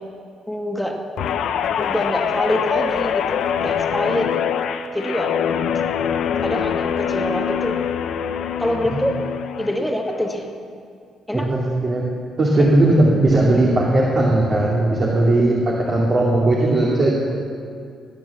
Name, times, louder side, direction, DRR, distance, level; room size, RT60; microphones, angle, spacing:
voice 1, 0.5-1.0 1.8-4.3 4.9-5.4 6.4-7.9 8.6-9.2 9.6-10.5 11.3-11.5 12.5-12.7, left 1 dB, ahead, 1 dB, 2.1 m, -25 dB
Guitar, 1.2-9.8 10.1-10.5, left 8 dB, 80° left, 0.8 m, -24 dB
voice 2, 11.3-12.0 12.4-17.1, right 2 dB, 45° right, -4 dB, 2.6 m, -17 dB
18.0 x 9.6 x 7.2 m, 2.3 s
cardioid pair, 90°, 0 cm